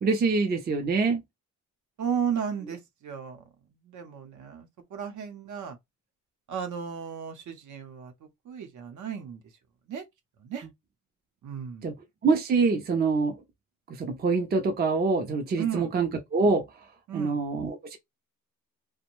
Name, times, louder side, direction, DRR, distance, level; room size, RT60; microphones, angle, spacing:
voice 1, 0.0-1.2 11.8-11.9 12.2-13.4 14.0-16.6 17.1-18.0, right 4 dB, 30° right, 0.5 m, -25 dB
voice 2, 2.0-3.4 3.8-5.8 6.5-8.1 8.5-9.4 9.9-10.0 10.4-10.6 11.4-11.9 15.6-15.9 17.1-17.4, right 7 dB, 60° right, 0.8 m, -34 dB
2.5 x 2.1 x 2.9 m
cardioid pair, 150°, 33 cm